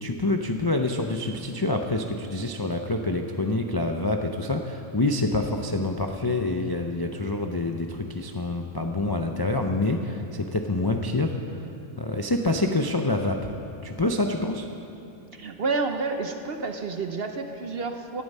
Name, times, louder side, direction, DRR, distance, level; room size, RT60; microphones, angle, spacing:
voice 1, 0.0-11.4 12.0-13.5 13.8-14.7, left 2 dB, 30° left, 4 dB, 0.4 m, -26 dB
voice 2, 15.3-18.2, right 4 dB, 50° right, 6 dB, 0.9 m, -29 dB
17.5 x 11.5 x 5.5 m, 2.9 s
omnidirectional pair, 1.5 m